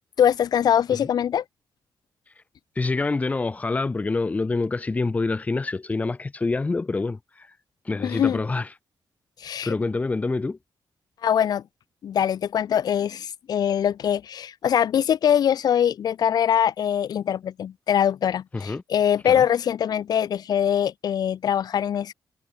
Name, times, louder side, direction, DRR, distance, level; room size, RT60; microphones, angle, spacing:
voice 1, 0.2-1.4 8.0-8.4 9.4-9.7 11.2-11.6 12.0-22.1, left 9 dB, 60° left, 1.3 m, -23 dB
voice 2, 2.7-7.5 7.8-8.7 9.6-10.6 18.5-18.8 19.2-19.4, left 3 dB, 20° left, 1.3 m, -26 dB
wide cardioid pair, 145°, 8 cm